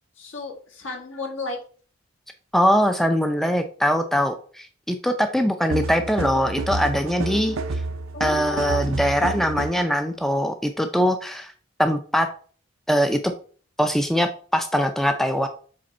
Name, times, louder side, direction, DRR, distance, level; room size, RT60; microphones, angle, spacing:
voice 1, 0.2-1.6 8.1-8.9, left 2 dB, 70° left, 0 dB, 2.0 m, -33 dB
voice 2, 2.5-7.6 8.2-11.5 11.8-12.3 12.9-13.2 13.8-15.5, equal, ahead, 6 dB, 0.4 m, -22 dB
sound 1, 5.7-9.9, right 3 dB, 85° right, 0.6 m, -30 dB
7.6 x 3.5 x 4.2 m, 0.43 s
head